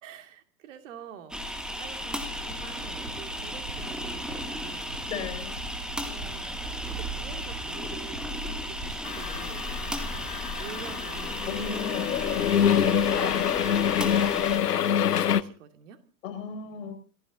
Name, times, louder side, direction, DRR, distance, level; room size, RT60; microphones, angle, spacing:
voice 1, 0.0-5.0 6.1-9.8 10.6-11.6 12.8-16.0, right 8 dB, 50° right, 6 dB, 2.7 m, -46 dB
sound 1, 1.3-14.6, equal, ahead, 1.9 m, -35 dB
Run, 2.2-11.7, right 1 dB, 80° right, 3.0 m, -46 dB
voice 2, 5.1-5.6 11.5-12.1 16.2-16.9, left 5 dB, 55° left, 6 dB, 5.9 m, -35 dB
sound 2, 9.1-15.4, left 9 dB, 70° left, 1.0 m, -26 dB
30.0 x 15.5 x 2.9 m, 0.37 s
figure-of-eight pair, 105°, 48 cm